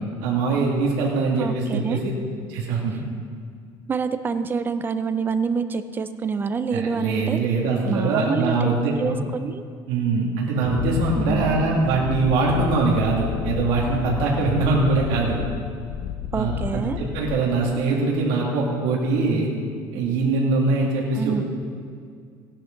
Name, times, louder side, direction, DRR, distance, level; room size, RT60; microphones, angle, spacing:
voice 1, 0.2-2.0 2.5-3.0 6.7-8.9 9.9-15.4 16.3-19.5 19.9-21.4, right 3 dB, 85° right, -3 dB, 2.5 m, -22 dB
voice 2, 1.4-2.0 3.9-7.4 7.8-9.6 11.2-11.5 16.3-17.0 21.2-21.4, right 5 dB, 25° right, 11 dB, 0.6 m, -27 dB
Wind, 10.6-17.8, left 9 dB, 60° left, 0.6 m, -31 dB
16.5 x 11.5 x 3.9 m, 2.2 s
cardioid pair, 145°, 9 cm